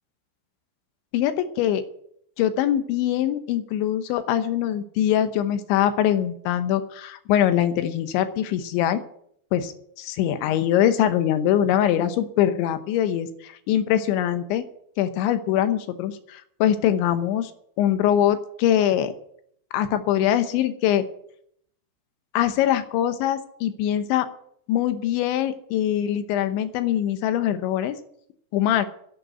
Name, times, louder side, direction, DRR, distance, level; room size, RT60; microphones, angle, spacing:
voice 1, 1.1-1.8 2.4-9.0 9.5-14.6 15.0-17.5 17.8-19.1 19.7-21.0 22.3-24.3 24.7-28.0 28.5-28.9, left 11 dB, 75° left, 10 dB, 3.2 m, -23 dB
11.5 x 9.1 x 8.0 m, 0.69 s
omnidirectional pair, 5.5 m